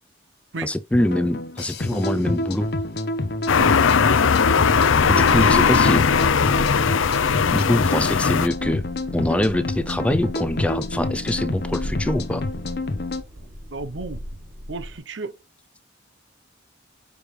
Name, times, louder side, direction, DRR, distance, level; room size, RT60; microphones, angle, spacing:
voice 1, 0.6-2.7 5.1-6.1 7.5-8.9 9.1-12.4, left 1 dB, 5° left, 0.4 m, -24 dB
sound 1, 0.9-13.2, left 2 dB, 55° left, 0.8 m, -28 dB
sound 2, 3.5-8.5, left 6 dB, 90° left, 0.6 m, -18 dB
sound 3, 4.7-15.0, equal, 85° right, 3.4 m, -37 dB
voice 2, 5.0-5.5 13.7-14.2 14.7-15.4, right 3 dB, 70° right, 0.7 m, -32 dB
6.2 x 4.9 x 3.2 m
head